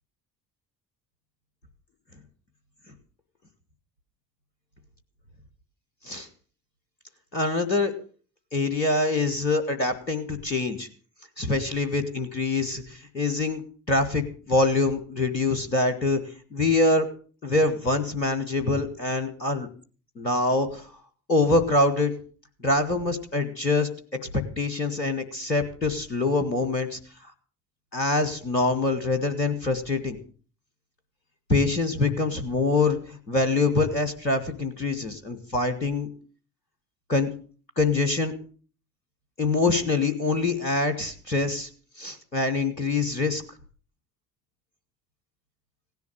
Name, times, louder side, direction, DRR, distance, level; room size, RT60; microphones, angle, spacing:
voice 1, 7.3-7.9 8.5-10.9 11.4-13.6 13.9-16.2 16.5-17.1 17.4-19.7 20.2-20.9 21.3-22.1 22.6-23.9 24.2-27.0 27.9-30.2 31.5-36.1 37.1-37.3 37.8-38.3 39.4-41.7 42.0-43.4, left 2 dB, 90° left, 13 dB, 1.2 m, -24 dB
16.5 x 10.5 x 6.3 m, 0.41 s
figure-of-eight pair, 45°, 49 cm